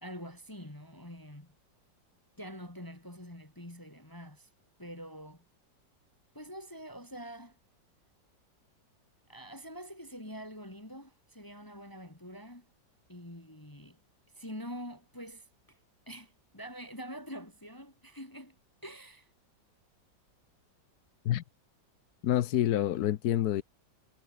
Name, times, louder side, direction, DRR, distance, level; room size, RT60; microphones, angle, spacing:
voice 1, 0.0-1.6 2.4-4.5 4.8-5.5 6.3-7.6 9.3-12.7 13.1-14.0 14.4-15.8 16.1-18.6 18.8-19.3, equal, 10° left, 2.3 m, -45 dB
voice 2, 22.2-23.6, left 12 dB, 65° left, 1.1 m, -27 dB
omnidirectional pair, 2.0 m